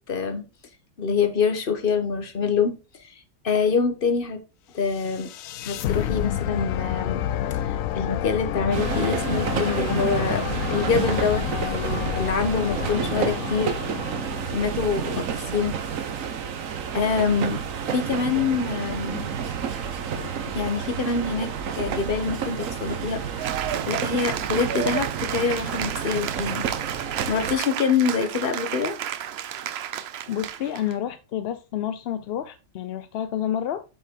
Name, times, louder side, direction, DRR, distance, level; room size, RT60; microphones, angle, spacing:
voice 1, 0.1-0.4 1.0-2.7 3.0-3.1 3.4-4.4 4.7-5.3 5.6-7.2 7.5-7.7 7.9-13.7 14.5-15.3 15.5-15.8 16.9-17.6 17.9-19.3 20.5-23.2 23.9-26.7 27.3-29.0, left 5 dB, 45° left, 1.2 m, -25 dB
sound 1, 4.9-15.1, left 11 dB, 85° left, 1.0 m, -29 dB
sound 2, 8.7-27.6, right 7 dB, 80° right, 1.2 m, -30 dB
voice 2, 20.1-20.5 30.3-33.8, left 10 dB, 65° left, 0.7 m, -29 dB
Cheering / Applause, 23.4-30.9, right 10 dB, 60° right, 0.8 m, -31 dB
7.5 x 5.5 x 3.7 m
omnidirectional pair, 1.4 m